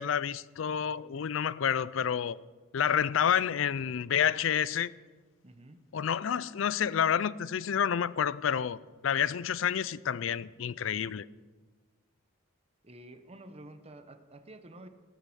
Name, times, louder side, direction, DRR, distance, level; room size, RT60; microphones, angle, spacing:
voice 1, 0.0-2.4 2.7-4.9 5.9-11.3, left 8 dB, 70° left, 0.4 m, -29 dB
voice 2, 5.4-5.8 12.8-14.9, right 1 dB, 30° right, 1.0 m, -50 dB
19.0 x 8.5 x 6.3 m
head